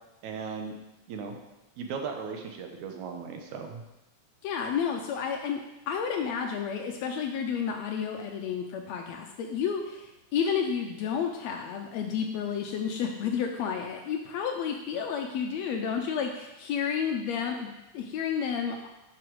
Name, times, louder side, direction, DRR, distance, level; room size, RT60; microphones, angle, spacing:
voice 1, 0.2-0.7 1.1-1.4 1.8-3.8, right 5 dB, 70° right, 4 dB, 2.2 m, -37 dB
voice 2, 4.4-18.8, left 7 dB, 80° left, 3 dB, 1.5 m, -31 dB
11.0 x 5.0 x 4.6 m, 0.98 s
omnidirectional pair, 3.7 m